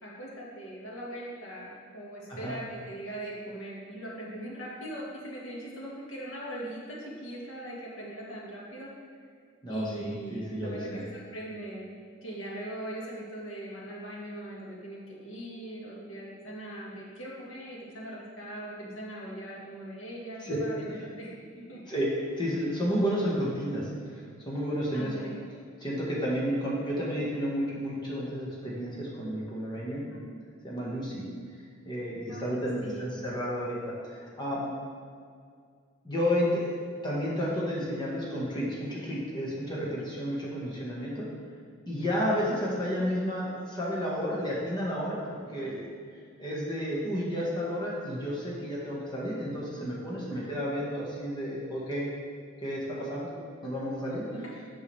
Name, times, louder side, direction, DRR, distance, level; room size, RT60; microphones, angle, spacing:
voice 1, 0.0-8.9 9.7-11.9 12.2-21.8 24.9-25.4 30.1-30.2 32.3-33.1 39.9-40.1 45.6-45.7 50.3-50.5 54.3-54.4, right 1 dB, 90° left, -5 dB, 1.9 m, -40 dB
voice 2, 9.6-11.0 20.4-20.6 20.9-21.0 21.9-22.1 22.4-25.1 25.8-30.0 30.6-31.2 31.8-34.7 36.0-41.3 41.8-45.9 46.4-52.1 52.6-53.3 53.6-54.2, equal, 25° left, -6 dB, 1.8 m, -31 dB
8.4 x 6.2 x 3.5 m, 2.1 s
head